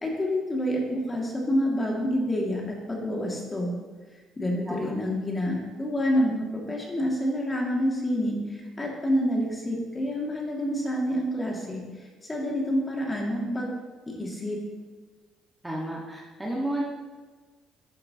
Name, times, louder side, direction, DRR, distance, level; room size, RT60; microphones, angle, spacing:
voice 1, 0.0-3.7 4.4-11.8 12.3-13.7 14.1-14.6, equal, 25° left, -1 dB, 2.2 m, -28 dB
voice 2, 15.6-16.8, right 1 dB, 10° right, -3 dB, 1.5 m, -31 dB
11.5 x 6.5 x 2.9 m, 1.3 s
cardioid pair, 85°, 0 cm